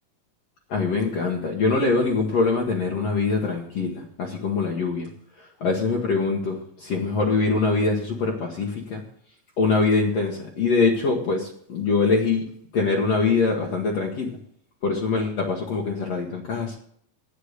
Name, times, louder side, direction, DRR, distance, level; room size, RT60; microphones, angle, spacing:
voice 1, 0.7-5.1 5.4-9.0 9.6-12.4 12.7-14.4 14.8-16.8, left 4 dB, 55° left, -1 dB, 2.3 m, -23 dB
8.8 x 8.3 x 8.1 m, 0.66 s
omnidirectional pair, 3.7 m